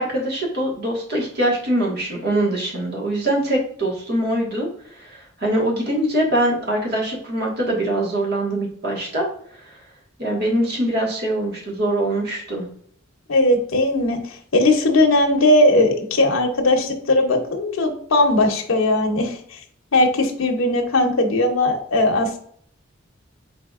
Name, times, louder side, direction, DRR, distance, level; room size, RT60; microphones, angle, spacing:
voice 1, 0.0-4.7 5.0-9.3 10.2-12.7, right 1 dB, 55° right, -2 dB, 1.5 m, -23 dB
voice 2, 13.3-19.6 19.9-22.4, left 1 dB, 85° left, 2 dB, 0.8 m, -18 dB
4.8 x 3.9 x 2.4 m, 0.63 s
head